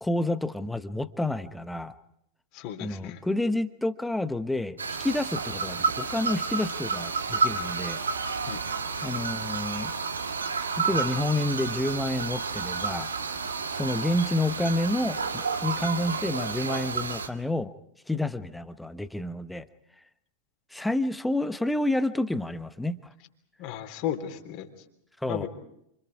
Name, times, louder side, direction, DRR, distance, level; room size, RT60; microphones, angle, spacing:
voice 1, 0.0-1.9 2.8-8.0 9.0-9.9 10.8-13.1 13.7-17.7 18.1-19.6 20.7-23.0 25.2-25.5, left 1 dB, 5° left, 13 dB, 1.2 m, -29 dB
voice 2, 2.5-3.2 8.5-8.6 23.6-24.7 25.3-25.5, left 10 dB, 45° left, 4 dB, 3.5 m, -34 dB
sound 1, 4.8-17.3, right 5 dB, 75° right, 2.0 m, -30 dB
29.0 x 27.0 x 4.8 m, 0.77 s
figure-of-eight pair, 90°, 0 cm